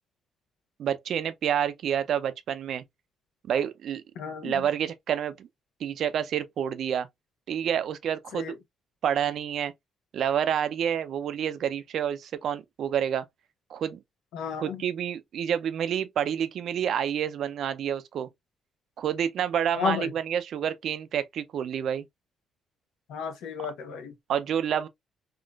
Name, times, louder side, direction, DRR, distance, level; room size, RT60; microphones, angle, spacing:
voice 1, 0.8-2.8 3.5-4.0 4.4-5.5 5.8-7.1 7.5-8.5 9.0-9.7 10.1-13.2 13.7-14.0 14.6-18.3 19.0-22.1 24.3-24.9, right 9 dB, 70° right, 0.4 m, -28 dB
voice 2, 4.2-4.7 8.3-8.6 14.3-14.8 19.8-20.1 23.1-24.1, left 6 dB, 85° left, 0.8 m, -32 dB
3.7 x 2.4 x 2.3 m
cardioid pair, 90°, 0 cm